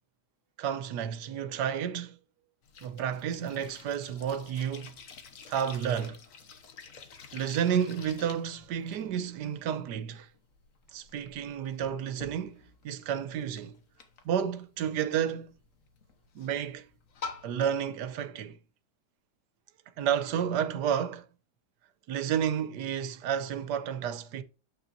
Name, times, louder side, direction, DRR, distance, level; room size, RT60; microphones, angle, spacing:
voice 1, 0.6-2.2 2.8-4.9 5.5-6.2 7.3-10.3 10.9-13.8 14.2-15.5 16.3-16.9 17.4-18.6 20.0-21.3 22.1-24.4, right 8 dB, 85° right, 1.4 m, -31 dB
sound 1, 2.6-17.8, left 5 dB, 55° left, 1.4 m, -49 dB
8.9 x 6.8 x 2.6 m
omnidirectional pair, 1.8 m